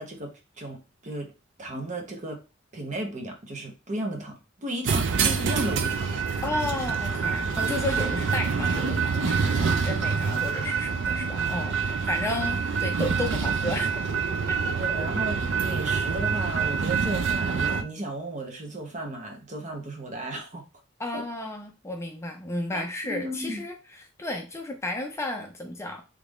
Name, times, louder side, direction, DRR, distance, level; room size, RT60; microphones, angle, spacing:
voice 1, 0.0-1.3 1.6-2.4 2.7-6.3 14.8-20.7 21.1-21.3 22.7-23.6, right 1 dB, 40° right, 0.8 m, -35 dB
sound 1, 4.9-17.8, right 5 dB, 65° right, 0.4 m, -26 dB
voice 2, 6.4-14.0 14.5-14.6 15.0-15.1 21.0-26.0, left 2 dB, 15° left, 0.4 m, -33 dB
3.2 x 2.5 x 3.5 m
head